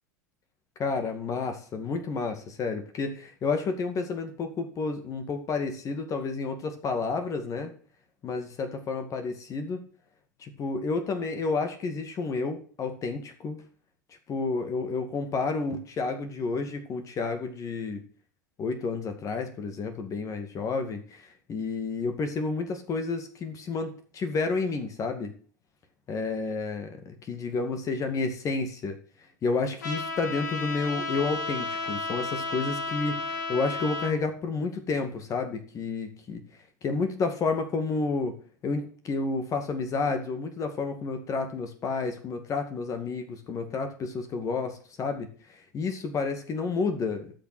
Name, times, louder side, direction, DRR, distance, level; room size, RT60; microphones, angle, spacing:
voice 1, 0.8-7.7 8.2-9.8 10.4-13.6 14.3-18.0 18.6-25.3 26.1-29.0 29.4-36.4 36.8-38.4 38.6-47.3, left 4 dB, 35° left, 7 dB, 2.3 m, -30 dB
Trumpet, 29.8-34.1, left 3 dB, 75° left, 3.2 m, -33 dB
13.0 x 6.4 x 7.9 m, 0.42 s
figure-of-eight pair, 85°, 10 cm